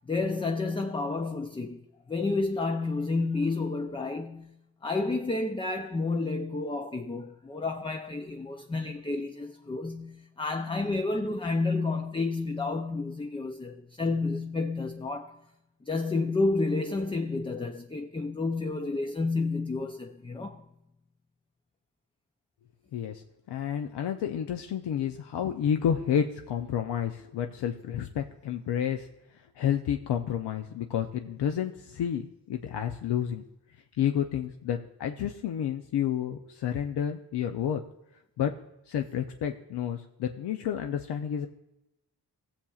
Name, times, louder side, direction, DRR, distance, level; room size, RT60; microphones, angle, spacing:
voice 1, 0.1-4.6 4.8-15.4 15.9-20.7, left 3 dB, 15° left, 0.4 m, -30 dB
voice 2, 22.9-29.1 29.6-33.4 34.0-37.8 38.4-38.5 38.9-41.5, left 9 dB, 85° left, 0.6 m, -30 dB
18.0 x 7.2 x 2.4 m
cardioid pair, 90°, 39 cm